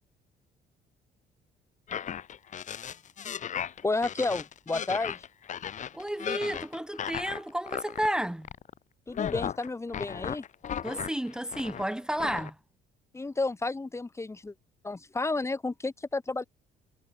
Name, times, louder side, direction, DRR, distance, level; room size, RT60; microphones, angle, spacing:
sound 1, 1.9-8.1 8.4-8.8 9.1-11.9 12.2-12.5, left 9 dB, 45° left, 2.3 m, -36 dB
voice 1, 3.8-5.2 9.1-10.4 13.1-14.5 14.8-16.4, left 3 dB, 15° left, 2.6 m, -31 dB
voice 2, 5.9-8.5 10.8-12.6, right 1 dB, 5° right, 1.9 m, -32 dB
cardioid pair, 110°, 17 cm